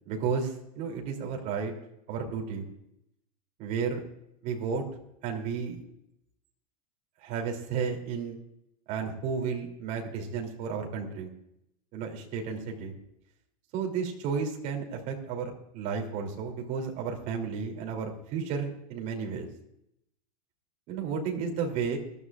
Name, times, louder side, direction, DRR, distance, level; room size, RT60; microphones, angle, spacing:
voice 1, 0.1-1.7 2.1-2.7 3.6-4.0 4.4-4.8 5.2-5.8 7.2-8.4 8.9-11.3 11.9-12.9 13.7-19.5 20.9-22.0, right 6 dB, 40° right, 2 dB, 3.0 m, -32 dB
21.0 x 13.5 x 2.5 m, 0.80 s
supercardioid pair, 160°, 21 cm